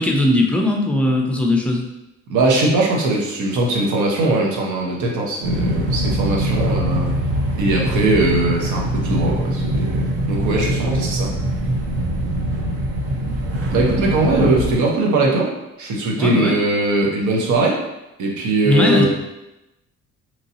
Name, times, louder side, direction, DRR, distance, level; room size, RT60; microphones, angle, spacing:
voice 1, 0.0-1.8 16.2-16.5 18.7-19.1, left 2 dB, 5° left, 0 dB, 0.5 m, -18 dB
voice 2, 2.3-7.1 7.5-11.3 13.7-15.5 15.8-17.8 18.2-19.1, right 2 dB, 75° right, -1 dB, 0.8 m, -20 dB
sound 1, 5.4-14.7, right 1 dB, 50° right, 0.6 m, -22 dB
3.0 x 2.7 x 2.7 m, 0.95 s
cardioid pair, 90°, 30 cm